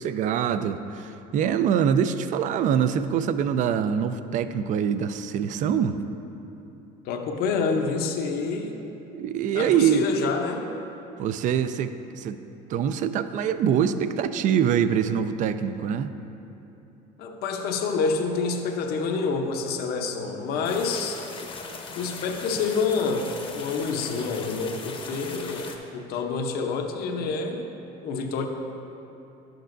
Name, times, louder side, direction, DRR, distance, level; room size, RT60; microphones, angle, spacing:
voice 1, 0.0-6.0 9.1-10.1 11.2-12.4 12.7-16.1, right 8 dB, 50° right, 11 dB, 0.4 m, -24 dB
voice 2, 7.0-8.8 9.5-10.7 17.2-21.2 21.9-27.7 28.0-28.5, left 4 dB, 65° left, 3 dB, 0.8 m, -27 dB
sound 1, 20.6-25.8, left 4 dB, 30° left, 0.8 m, -39 dB
11.0 x 7.7 x 2.6 m, 2.9 s
cardioid pair, 120°, 17 cm